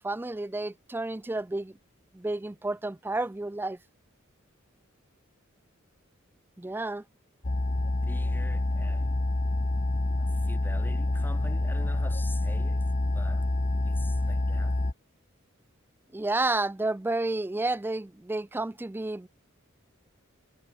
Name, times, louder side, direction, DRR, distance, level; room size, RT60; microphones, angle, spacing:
voice 1, 0.0-1.7 2.1-3.8 6.6-7.0 16.1-19.3, right 2 dB, 10° right, 0.4 m, -31 dB
sound 1, 7.4-14.9, left 2 dB, 35° left, 0.9 m, -27 dB
voice 2, 8.0-9.2 9.9-13.5 13.8-14.8, left 1 dB, 10° left, 7.9 m, -46 dB
head